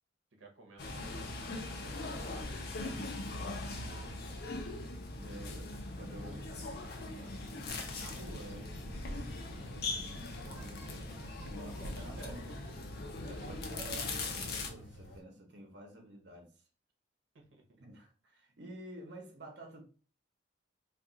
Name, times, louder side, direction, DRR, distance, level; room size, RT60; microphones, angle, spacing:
voice 1, 0.4-2.9 3.2-4.9 5.7-5.8 6.2-7.6 11.1-12.7 13.3-13.5 17.3-17.8, right 2 dB, 90° right, 1 dB, 0.8 m, -57 dB
sound 1, 0.8-14.7, left 2 dB, 55° left, 0.6 m, -40 dB
voice 2, 5.2-6.7 7.9-12.5 13.2-16.5 17.8-19.8, right 1 dB, 60° right, 2 dB, 0.8 m, -50 dB
sound 2, 6.1-15.2, equal, 75° left, 1.0 m, -51 dB
2.4 x 2.3 x 3.8 m, 0.37 s
head